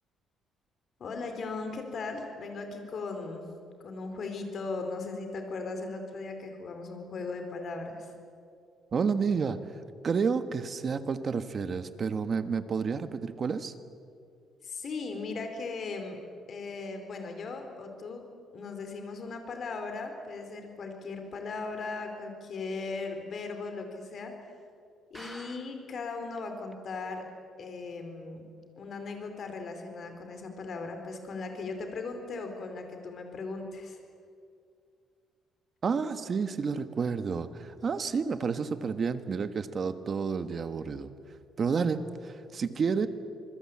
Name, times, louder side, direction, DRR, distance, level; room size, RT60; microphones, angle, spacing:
voice 1, 1.0-3.5 3.8-8.1 14.6-16.2 16.5-18.2 18.5-24.5 25.1-27.3 27.6-28.4 28.8-34.0, left 3 dB, 45° left, 5 dB, 4.3 m, -38 dB
voice 2, 8.9-9.6 10.0-13.7 35.8-41.1 41.6-43.1, right 5 dB, 35° right, 10 dB, 1.4 m, -30 dB
sound 1, 25.1-26.0 26.4-26.5 26.7-26.8 27.3-27.4, right 1 dB, 5° right, 0.7 m, -48 dB
26.5 x 21.0 x 8.7 m, 2.3 s
cardioid pair, 140°, 0 cm